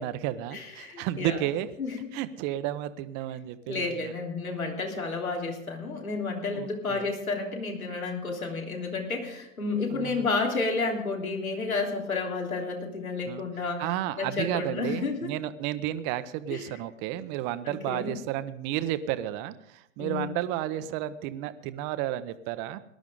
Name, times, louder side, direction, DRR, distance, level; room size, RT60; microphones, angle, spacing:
voice 1, 0.0-1.7 2.1-4.1 6.5-7.1 9.9-10.2 13.3-13.5 13.8-22.8, right 13 dB, 25° right, 13 dB, 0.7 m, -32 dB
voice 2, 0.5-1.4 1.8-2.1 3.7-13.9 14.2-15.3 16.5-16.7 17.7-18.2 20.0-20.3, left 3 dB, 80° left, 0 dB, 3.6 m, -31 dB
19.0 x 11.5 x 3.8 m, 0.78 s
figure-of-eight pair, 110°, 41 cm